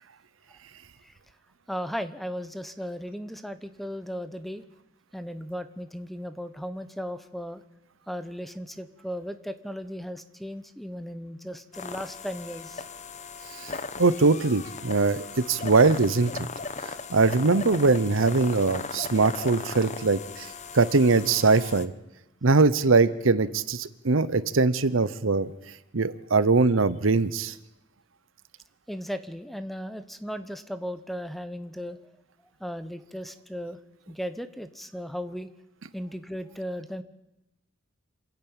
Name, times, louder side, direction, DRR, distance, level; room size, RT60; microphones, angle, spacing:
voice 1, 1.7-4.6 5.1-7.6 8.1-12.8 28.9-32.0 32.6-33.8 34.1-35.5 35.9-37.0, equal, ahead, 11 dB, 0.9 m, -36 dB
sound 1, 11.7-21.9, left 4 dB, 35° left, 1.0 m, -38 dB
voice 2, 14.0-16.3 17.1-20.5 20.7-21.9 22.4-25.5 25.9-27.5, right 3 dB, 80° right, 15 dB, 0.9 m, -22 dB
27.5 x 10.5 x 8.9 m, 0.93 s
head